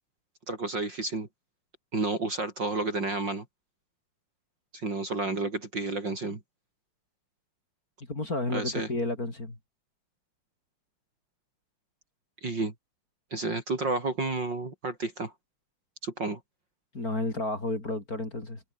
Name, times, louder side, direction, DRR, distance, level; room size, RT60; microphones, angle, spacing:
voice 1, 0.5-1.3 1.9-3.4 4.7-6.4 8.5-8.9 12.4-12.7 13.3-15.3 16.0-16.4, right 3 dB, 35° right, 3.9 m, -31 dB
voice 2, 8.1-9.6 16.9-18.6, left 2 dB, 25° left, 4.9 m, -31 dB
omnidirectional pair, 3.5 m